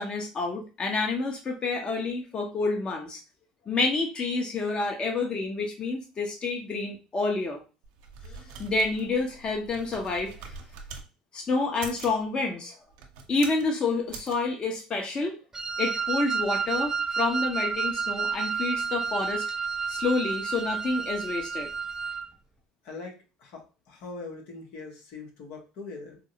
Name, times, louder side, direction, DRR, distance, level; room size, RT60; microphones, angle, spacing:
voice 1, 0.0-3.2 3.7-7.6 8.2-10.3 11.3-12.8 13.3-15.4 15.8-19.4 19.9-21.7, left 3 dB, 35° left, 2 dB, 0.9 m, -29 dB
sound 1, 7.8-11.1 11.7-12.2 12.9-13.7 14.1-14.4, right 5 dB, 80° right, 0.7 m, -43 dB
Wind instrument woodwind instrument, 15.5-22.3, right 5 dB, 20° right, 0.3 m, -30 dB
voice 2, 22.8-26.2, left 3 dB, 70° left, 2 dB, 1.0 m, -42 dB
4.3 x 2.0 x 2.7 m, 0.31 s
supercardioid pair, 80°, 3 cm